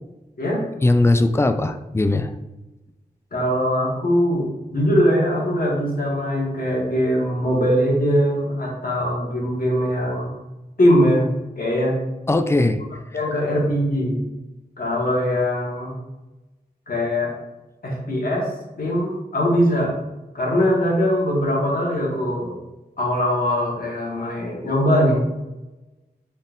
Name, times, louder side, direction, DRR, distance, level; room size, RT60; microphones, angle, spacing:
voice 1, 0.8-2.3 12.3-12.8, left 2 dB, 15° left, 8 dB, 0.3 m, -19 dB
voice 2, 3.3-10.3 10.8-11.2 11.6-12.0 13.1-14.2 14.8-15.9 16.9-17.3 17.8-18.5 18.8-19.9 20.3-22.6 23.0-25.3, equal, 60° left, -3 dB, 1.4 m, -21 dB
4.2 x 3.5 x 2.6 m, 1.0 s
cardioid pair, 50°, 17 cm